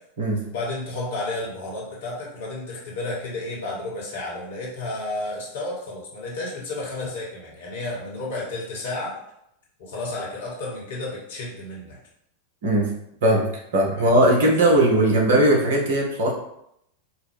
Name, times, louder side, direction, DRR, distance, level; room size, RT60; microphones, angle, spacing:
voice 1, 0.5-9.2 9.8-12.0 13.9-14.9, left 2 dB, 60° left, -3 dB, 1.3 m, -32 dB
voice 2, 13.7-16.3, right 1 dB, 60° right, -1 dB, 0.9 m, -18 dB
4.6 x 2.2 x 3.4 m, 0.77 s
figure-of-eight pair, 90°, 0 cm